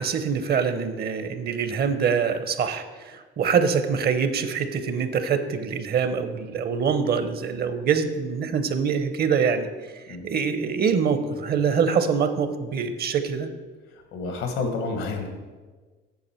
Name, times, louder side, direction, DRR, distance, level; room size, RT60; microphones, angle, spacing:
voice 1, 0.0-9.7 9.9-13.5, right 6 dB, 50° right, 10 dB, 0.7 m, -24 dB
voice 2, 14.1-15.3, left 4 dB, 85° left, 5 dB, 1.4 m, -29 dB
8.2 x 6.5 x 4.4 m, 1.4 s
cardioid pair, 115°, 21 cm